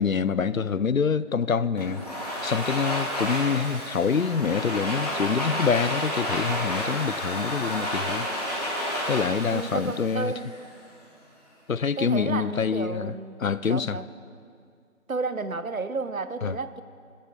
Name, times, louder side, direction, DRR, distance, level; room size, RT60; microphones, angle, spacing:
voice 1, 0.0-2.0 2.4-8.3 9.1-10.3 11.7-13.1 13.4-14.0 16.4-16.6, left 6 dB, 70° left, 17 dB, 0.6 m, -26 dB
Domestic sounds home sounds, 1.8-10.7, equal, 25° left, 2.2 m, -31 dB
voice 2, 9.5-10.5 12.0-14.1 15.1-16.8, right 4 dB, 75° right, 13 dB, 0.9 m, -32 dB
20.5 x 12.5 x 4.0 m, 2.2 s
figure-of-eight pair, 170°, 42 cm